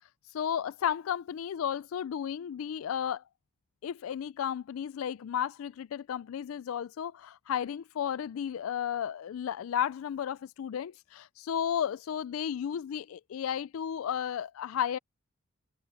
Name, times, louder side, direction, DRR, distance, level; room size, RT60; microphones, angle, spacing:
voice 1, 0.3-3.2 3.8-15.0, left 9 dB, 85° left, 0.3 m, -33 dB
head